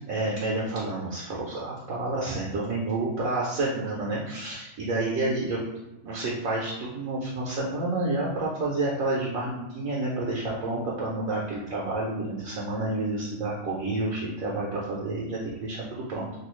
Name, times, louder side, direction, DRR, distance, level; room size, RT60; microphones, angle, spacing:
voice 1, 0.1-5.6 6.0-16.3, right 2 dB, 65° right, -4 dB, 1.0 m, -29 dB
3.3 x 2.3 x 3.0 m, 1.0 s
omnidirectional pair, 1.7 m